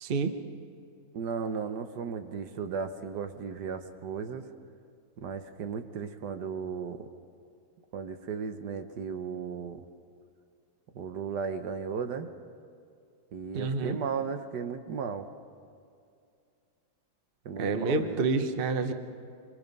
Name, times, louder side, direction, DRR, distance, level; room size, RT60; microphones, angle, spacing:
voice 1, 0.0-0.3 13.5-14.0 17.6-18.9, right 4 dB, 40° right, 8 dB, 0.9 m, -28 dB
voice 2, 1.1-4.4 5.2-7.1 7.9-9.8 10.9-12.3 13.3-15.3 17.4-18.3, right 6 dB, 65° right, 8 dB, 1.5 m, -35 dB
25.0 x 24.5 x 5.4 m, 2.4 s
omnidirectional pair, 2.1 m